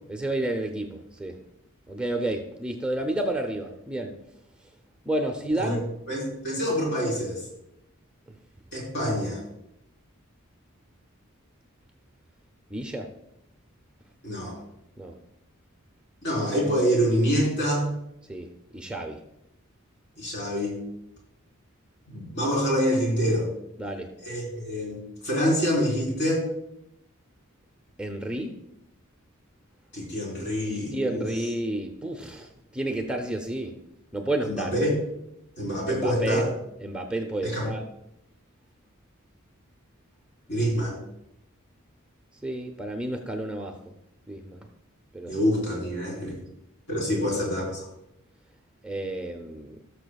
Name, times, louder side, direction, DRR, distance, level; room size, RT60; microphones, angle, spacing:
voice 1, 0.1-1.4 1.9-4.1 5.0-5.9 9.0-9.1 12.7-13.1 15.0-15.2 18.3-19.2 23.8-24.1 28.0-28.6 30.7-33.8 34.1-34.7 35.9-36.4 36.8-37.9 42.4-43.8 44.3-44.7 45.1-45.4 47.0-47.2 48.8-49.8, right 1 dB, 5° right, 2 dB, 0.6 m, -31 dB
voice 2, 6.1-7.4 8.7-9.4 14.2-14.6 16.2-17.9 20.2-20.8 22.1-23.5 24.2-26.5 29.9-31.3 34.5-34.9 35.6-36.5 37.4-37.7 40.5-41.0 45.3-46.3 46.9-47.9, equal, 55° left, -3 dB, 4.0 m, -26 dB
17.0 x 6.8 x 2.3 m, 0.83 s
head